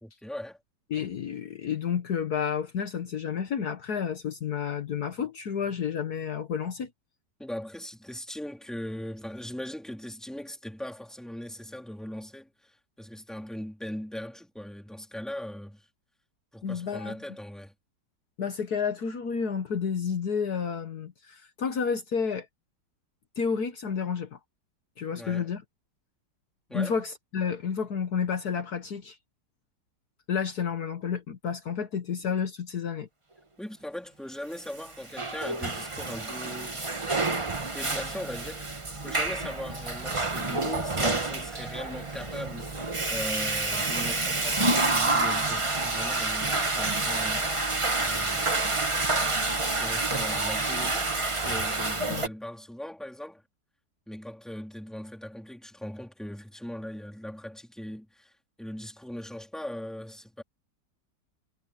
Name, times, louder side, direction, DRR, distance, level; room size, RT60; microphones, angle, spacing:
voice 1, 0.0-0.6 7.4-15.9 16.5-17.7 25.1-25.5 26.7-27.0 33.6-36.8 37.6-38.7 39.0-47.5 48.0-48.9 49.5-51.1 51.4-53.4 54.1-58.3 58.6-60.4, left 1 dB, ahead, 3.1 m, -39 dB
voice 2, 0.9-6.9 16.6-17.1 18.4-22.5 23.4-24.4 25.0-25.6 26.7-29.2 30.3-33.1 52.1-52.3, left 6 dB, 60° left, 1.7 m, -30 dB
Water / Toilet flush, 34.8-52.3, right 2 dB, 20° right, 1.3 m, -28 dB
omnidirectional pair, 1.9 m